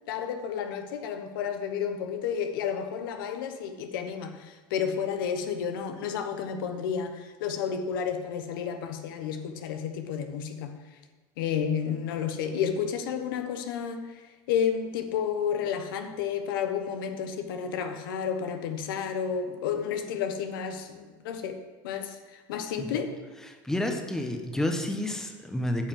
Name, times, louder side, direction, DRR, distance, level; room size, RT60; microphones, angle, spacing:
voice 1, 0.1-10.8 11.4-14.2 14.5-21.6 21.8-23.1, left 7 dB, 80° left, 7 dB, 1.1 m, -31 dB
voice 2, 23.5-25.9, left 1 dB, 5° left, 4 dB, 1.0 m, -30 dB
9.1 x 5.6 x 7.4 m, 1.2 s
supercardioid pair, 125°, 11 cm